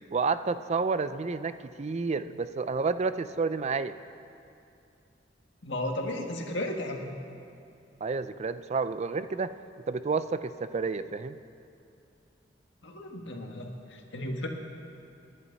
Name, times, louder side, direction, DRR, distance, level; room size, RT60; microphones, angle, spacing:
voice 1, 0.1-3.9 8.0-9.5 9.9-11.4, right 4 dB, 35° right, 12 dB, 0.4 m, -30 dB
voice 2, 5.6-7.1 12.8-14.5, left 1 dB, 65° left, 1 dB, 1.9 m, -34 dB
28.5 x 11.0 x 4.1 m, 2.6 s
head